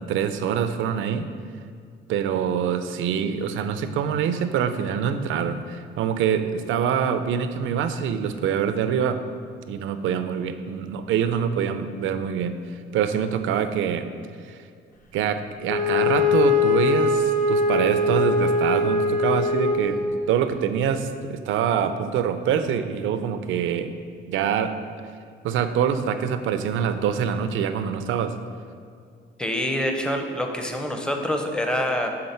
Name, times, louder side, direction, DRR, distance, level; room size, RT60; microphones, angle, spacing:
voice 1, 0.1-1.3 2.1-9.2 9.7-12.6 12.9-14.1 14.5-14.6 15.1-24.0 24.3-24.7 25.4-28.4, right 8 dB, 80° right, 10 dB, 0.4 m, -25 dB
Wind instrument woodwind instrument, 15.6-20.3, left 3 dB, 40° left, 0.7 m, -22 dB
voice 2, 29.4-32.1, equal, 5° left, 3 dB, 0.6 m, -26 dB
6.7 x 3.8 x 4.2 m, 2.2 s
cardioid pair, 90°, 20 cm